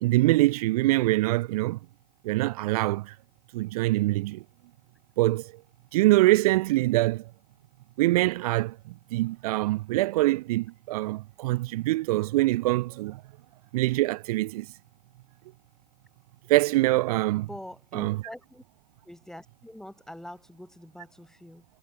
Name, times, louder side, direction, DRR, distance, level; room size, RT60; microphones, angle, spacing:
voice 1, 0.0-1.8 2.2-3.1 3.5-4.4 5.2-5.5 5.9-7.2 8.0-8.8 9.1-13.2 13.7-14.7 16.5-17.5 17.9-18.2, right 18 dB, 70° right, 0.4 m, -24 dB
voice 2, 17.5-18.6 19.0-21.6, left 1 dB, ahead, 3.4 m, -44 dB
hypercardioid pair, 105°, 20 cm